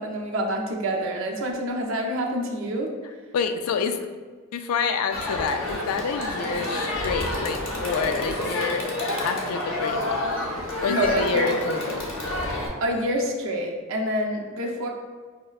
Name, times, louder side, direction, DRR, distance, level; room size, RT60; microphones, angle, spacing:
voice 1, 0.0-2.9 10.9-11.6 12.8-14.9, right 1 dB, 60° right, 0 dB, 0.6 m, -27 dB
voice 2, 3.3-4.0 4.5-10.2 10.8-12.0, left 6 dB, 80° left, 8 dB, 0.3 m, -28 dB
Crowd, 5.1-12.7, left 1 dB, 65° left, 0.7 m, -29 dB
5.5 x 2.1 x 2.3 m, 1.5 s
head